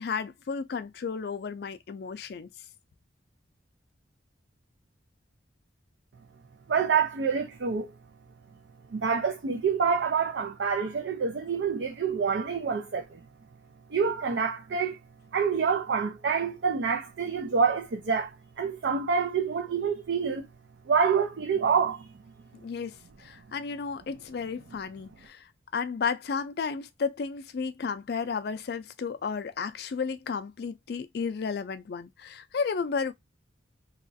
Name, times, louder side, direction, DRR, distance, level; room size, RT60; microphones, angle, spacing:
voice 1, 0.0-2.5 22.6-33.1, left 5 dB, 55° left, 0.3 m, -33 dB
voice 2, 6.7-7.9 8.9-13.2 13.9-15.0 15.3-18.3 18.6-20.5 20.9-22.1, right 6 dB, 65° right, 0.4 m, -27 dB
2.9 x 2.4 x 2.5 m
head